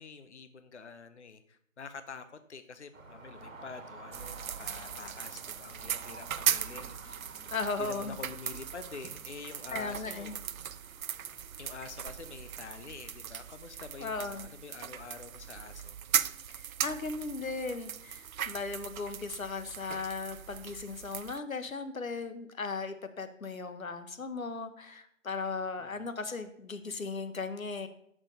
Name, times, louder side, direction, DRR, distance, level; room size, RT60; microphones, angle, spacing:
voice 1, 0.0-7.5 7.8-10.4 11.6-16.0 25.8-26.1, left 5 dB, 55° left, 11 dB, 0.7 m, -47 dB
sound 1, 2.9-12.6, right 3 dB, 70° right, 1.7 m, -51 dB
sound 2, 4.1-21.4, right 9 dB, 90° right, 0.5 m, -38 dB
voice 2, 7.5-8.2 9.7-10.4 14.0-14.5 16.5-27.9, left 4 dB, 85° left, 10 dB, 1.2 m, -37 dB
6.7 x 6.2 x 6.4 m, 0.69 s
figure-of-eight pair, 175°, 40 cm